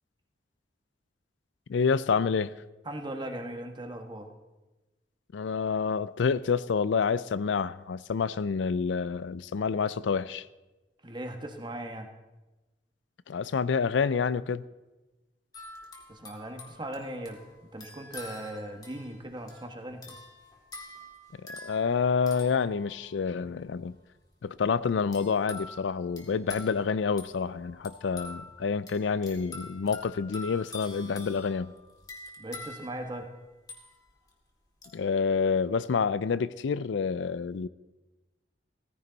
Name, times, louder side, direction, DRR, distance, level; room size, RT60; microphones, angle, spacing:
voice 1, 1.7-2.5 5.3-10.4 13.3-14.6 21.4-23.9 24.4-31.7 34.9-37.7, left 5 dB, 80° left, 17 dB, 0.4 m, -28 dB
voice 2, 2.8-4.3 11.0-12.1 16.1-20.2 32.4-33.3, right 1 dB, 25° right, 5 dB, 1.4 m, -39 dB
sound 1, 15.5-23.4 25.1-34.3 34.8-35.0, left 2 dB, 20° left, 2.1 m, -47 dB
16.5 x 15.0 x 4.0 m, 1.1 s
head